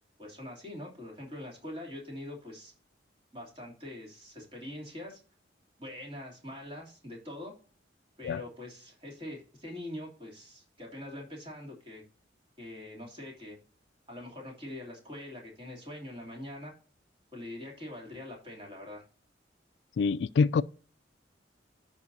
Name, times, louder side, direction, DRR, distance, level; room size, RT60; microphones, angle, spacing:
voice 1, 0.2-2.7 3.3-5.2 5.8-7.6 8.2-12.0 12.6-13.6 14.1-16.7 17.3-19.0, left 1 dB, 30° right, 2.8 m, -43 dB
voice 2, 20.0-20.6, left 5 dB, 70° left, 0.3 m, -25 dB
14.0 x 4.8 x 2.7 m
head